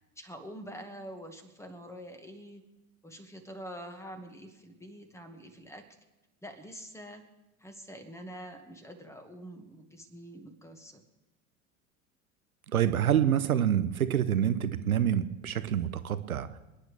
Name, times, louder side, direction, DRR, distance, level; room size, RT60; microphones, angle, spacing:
voice 1, 0.2-2.6 3.0-5.8 6.4-7.2 7.6-11.0, equal, 5° left, 6 dB, 2.0 m, -46 dB
voice 2, 12.7-16.6, right 10 dB, 85° right, 13 dB, 0.9 m, -27 dB
28.0 x 10.0 x 3.5 m, 1.0 s
figure-of-eight pair, 80°, 42 cm